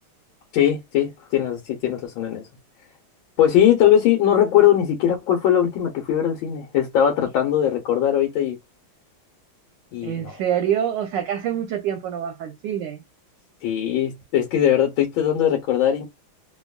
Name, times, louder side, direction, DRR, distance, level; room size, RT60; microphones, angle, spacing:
voice 1, 0.5-2.4 3.4-8.6 9.9-10.4 13.6-16.1, left 10 dB, 75° left, 1.5 m, -20 dB
voice 2, 10.0-13.0, right 9 dB, 75° right, 1.1 m, -26 dB
3.4 x 2.2 x 2.2 m
omnidirectional pair, 2.3 m